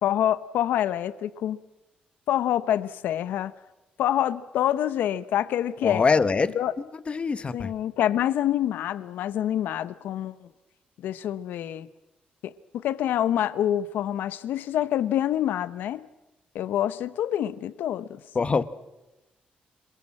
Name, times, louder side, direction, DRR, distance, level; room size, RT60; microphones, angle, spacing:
voice 1, 0.0-1.6 2.3-3.5 4.0-6.0 6.6-6.7 7.5-10.5 11.0-11.9 12.4-16.1 16.5-18.2, left 11 dB, 85° left, 15 dB, 0.9 m, -26 dB
voice 2, 5.8-7.7 18.3-18.6, left 4 dB, 35° left, 14 dB, 1.3 m, -24 dB
26.5 x 22.5 x 7.5 m, 1.0 s
cardioid pair, 95°, 3 cm